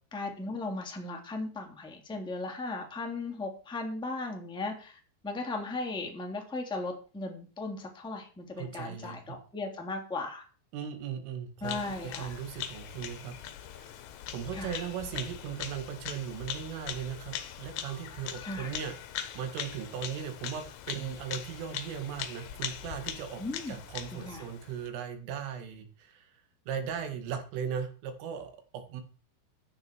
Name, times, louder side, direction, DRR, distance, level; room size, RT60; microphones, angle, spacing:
voice 1, 0.1-10.4 11.6-12.3 14.5-14.8 18.4-18.7 23.4-23.7 24.1-24.4, left 2 dB, ahead, 2 dB, 1.8 m, -37 dB
voice 2, 8.6-9.4 10.7-13.4 13.6-14.0 14.3-18.9 19.4-26.4 26.7-29.0, right 8 dB, 85° right, 7 dB, 4.7 m, -38 dB
Bird vocalization bird call bird song, 11.6-24.9, left 10 dB, 70° left, 3.2 m, -41 dB
15.5 x 10.5 x 4.7 m, 0.37 s
omnidirectional pair, 5.6 m